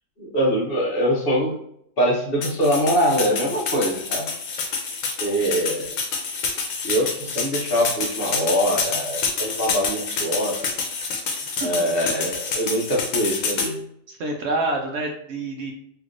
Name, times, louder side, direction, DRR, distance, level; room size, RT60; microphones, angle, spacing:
voice 1, 0.2-1.6 2.0-4.3 5.2-5.9 6.8-10.7 11.6-13.8, equal, 50° left, -3 dB, 0.9 m, -23 dB
sound 1, 2.4-13.7, left 4 dB, 85° left, 1.1 m, -27 dB
voice 2, 14.1-15.7, right 2 dB, 65° right, 2 dB, 0.7 m, -27 dB
3.2 x 2.8 x 2.5 m, 0.71 s
omnidirectional pair, 1.4 m